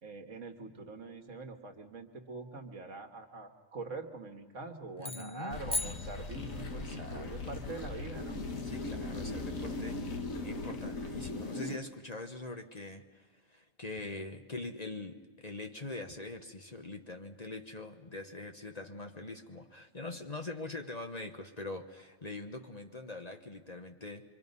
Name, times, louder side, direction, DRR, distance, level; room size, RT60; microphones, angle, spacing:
voice 1, 0.0-8.4, right 3 dB, 70° right, 4 dB, 2.0 m, -44 dB
voice 2, 5.0-5.6 6.7-7.5 8.6-10.0 10.4-24.2, left 2 dB, 30° left, 4 dB, 1.2 m, -43 dB
sound 1, 5.0-6.9, left 2 dB, 10° left, 0.4 m, -39 dB
sound 2, 5.5-11.8, left 3 dB, 85° left, 1.8 m, -39 dB
26.0 x 24.5 x 5.4 m, 1.4 s
omnidirectional pair, 1.4 m